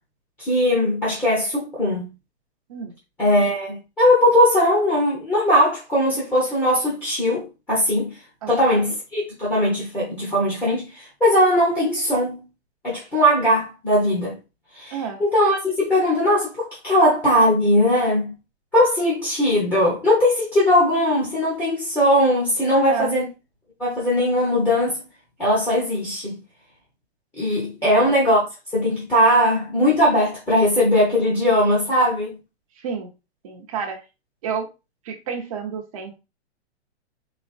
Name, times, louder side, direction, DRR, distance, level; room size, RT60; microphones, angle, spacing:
voice 1, 0.4-2.1 3.2-8.1 8.5-12.4 12.8-14.3 14.7-14.9 15.2-18.3 18.7-23.2 23.8-25.0 25.4-26.3 27.4-28.4 28.7-32.4, left 1 dB, 5° left, 0.9 m, -19 dB
voice 2, 8.4-8.9 14.9-15.2 22.7-23.1 32.8-33.1 33.4-34.0 34.4-34.7 35.0-36.2, right 7 dB, 30° right, 0.8 m, -30 dB
4.2 x 4.1 x 2.4 m
hypercardioid pair, 170°, 33 cm